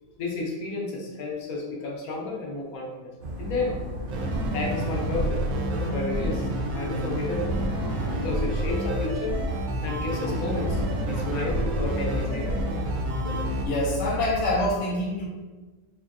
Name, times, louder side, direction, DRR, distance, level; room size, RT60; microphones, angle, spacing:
voice 1, 0.2-3.8 4.5-5.4 5.9-6.5 6.7-7.5 8.1-9.4 9.8-10.8 11.1-12.6, left 3 dB, 85° left, -1 dB, 1.3 m, -32 dB
Dog, 3.2-14.7, left 1 dB, 55° right, 0.6 m, -34 dB
sound 1, 4.1-13.7, right 1 dB, 85° right, 1.1 m, -29 dB
voice 2, 7.7-8.2 13.6-15.2, left 1 dB, 60° left, -6 dB, 1.0 m, -27 dB
4.3 x 2.7 x 2.5 m, 1.3 s
omnidirectional pair, 1.5 m